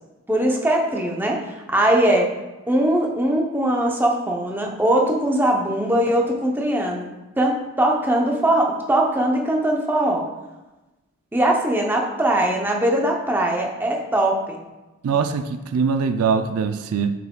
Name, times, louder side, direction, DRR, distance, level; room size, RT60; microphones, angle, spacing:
voice 1, 0.3-2.3 2.7-7.1 7.4-10.3 11.3-14.6, right 1 dB, 10° right, 0 dB, 0.6 m, -21 dB
voice 2, 15.0-17.1, right 5 dB, 90° right, 8 dB, 0.4 m, -22 dB
7.2 x 5.9 x 2.2 m, 1.1 s
head